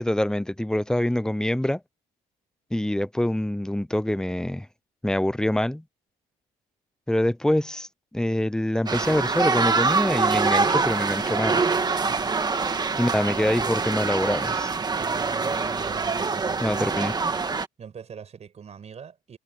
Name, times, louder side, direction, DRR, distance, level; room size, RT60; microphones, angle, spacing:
voice 1, 0.0-1.8 2.7-4.7 5.0-5.8 7.1-7.9 8.1-11.6 13.0-14.8 16.6-17.1, left 1 dB, 5° left, 0.7 m, -25 dB
sound 1, 8.9-17.7, right 4 dB, 25° right, 1.7 m, -25 dB
voice 2, 15.8-17.1 17.8-19.4, right 7 dB, 40° right, 5.4 m, -43 dB
cardioid pair, 110°, 17 cm